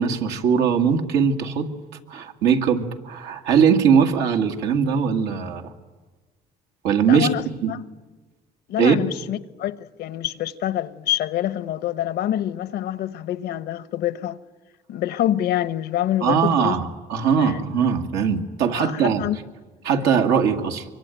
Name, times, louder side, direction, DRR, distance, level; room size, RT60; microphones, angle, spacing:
voice 1, 0.0-1.7 2.1-5.7 6.8-7.3 7.6-7.7 8.8-9.0 16.2-19.3 19.8-20.9, right 7 dB, 90° right, 2.2 m, -20 dB
voice 2, 7.1-7.8 8.7-14.4 14.9-16.8 17.4-17.6 18.7-19.4, left 12 dB, 75° left, 1.0 m, -26 dB
24.5 x 24.0 x 9.2 m
cardioid pair, 110°, 17 cm